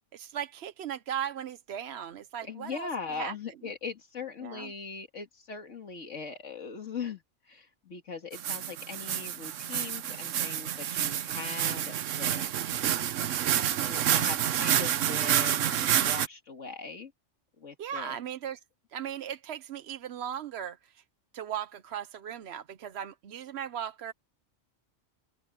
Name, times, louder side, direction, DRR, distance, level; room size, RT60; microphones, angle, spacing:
voice 1, 0.1-2.9 3.1-3.3 4.4-4.7 17.8-18.6 18.9-21.0 21.3-24.1, right 9 dB, 65° right, 0.9 m, -37 dB
voice 2, 2.4-12.7 13.8-17.1 17.6-18.2, left 5 dB, 80° left, 2.3 m, -40 dB
sound 1, 8.3-16.3, right 10 dB, 90° right, 1.1 m, -28 dB
open air
omnidirectional pair, 1.3 m